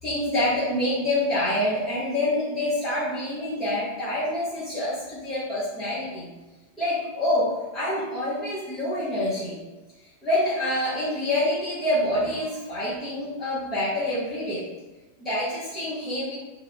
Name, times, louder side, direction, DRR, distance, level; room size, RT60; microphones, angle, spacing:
voice 1, 0.0-6.3 6.8-9.6 10.0-14.7 15.2-16.3, left 1 dB, 15° left, -11 dB, 0.9 m, -26 dB
2.5 x 2.1 x 4.0 m, 1.2 s
figure-of-eight pair, 90°, 0 cm